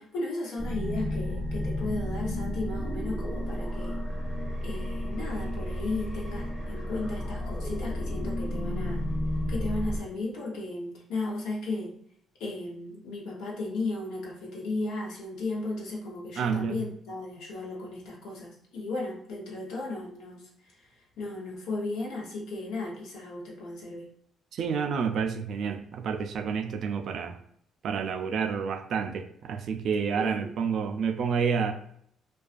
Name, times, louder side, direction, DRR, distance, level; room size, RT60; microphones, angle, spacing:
voice 1, 0.0-4.0 4.6-9.1 9.5-12.0 12.4-24.1 30.1-30.5, left 2 dB, 85° left, -2 dB, 0.8 m, -35 dB
sound 1, 0.6-10.0, left 1 dB, 15° left, 0.7 m, -32 dB
voice 2, 16.4-16.8 24.5-27.4 27.8-31.7, right 6 dB, 65° right, 6 dB, 0.3 m, -29 dB
2.4 x 2.2 x 2.4 m, 0.69 s
cardioid pair, 95°, 0 cm